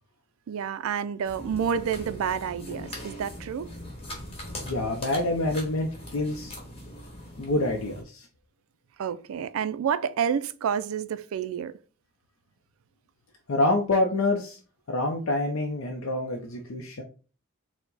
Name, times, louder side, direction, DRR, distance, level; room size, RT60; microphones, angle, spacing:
voice 1, 0.5-3.7 9.0-11.7, right 7 dB, 75° right, 0.3 m, -29 dB
sound 1, 1.2-8.0, left 1 dB, 30° left, 1.2 m, -41 dB
voice 2, 4.6-6.5 7.4-8.2 13.5-14.6 14.9-17.0, left 2 dB, 65° left, 0.5 m, -27 dB
4.5 x 2.1 x 3.9 m
head